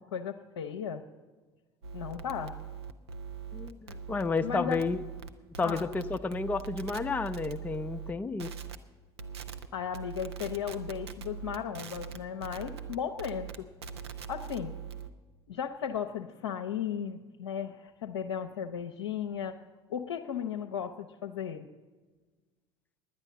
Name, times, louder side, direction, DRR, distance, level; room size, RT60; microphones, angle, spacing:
voice 1, 0.1-1.0 1.9-2.5 4.4-4.8 5.6-5.9 9.7-13.7 14.3-14.7 15.5-19.6 19.9-21.7, left 8 dB, 75° left, 1 dB, 0.6 m, -35 dB
sound 1, 1.8-8.1 8.4-8.8 9.2-9.7 9.9-15.1, right 7 dB, 75° right, 0.7 m, -42 dB
voice 2, 3.5-5.0 5.6-8.5, left 4 dB, 10° left, 8 dB, 0.4 m, -31 dB
10.5 x 9.7 x 7.7 m, 1.3 s
figure-of-eight pair, 65°, 14 cm